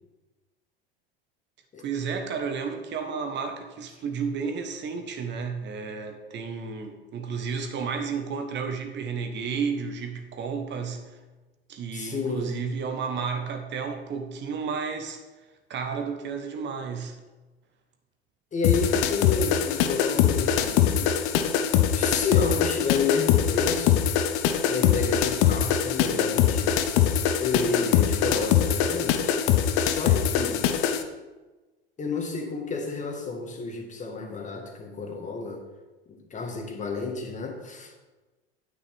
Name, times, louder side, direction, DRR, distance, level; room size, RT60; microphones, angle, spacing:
voice 1, 1.8-11.1 11.7-15.2 15.7-17.2, right 5 dB, 35° right, 6 dB, 1.2 m, -32 dB
voice 2, 11.9-12.5 18.5-21.1 21.9-24.0 24.7-26.8 27.4-29.4 29.7-30.7 32.0-35.6 36.1-37.9, left 4 dB, 25° left, 3 dB, 1.8 m, -30 dB
sound 1, 18.6-31.0, left 9 dB, 50° left, 0.9 m, -23 dB
9.4 x 9.0 x 3.5 m, 1.2 s
figure-of-eight pair, 80°, 30 cm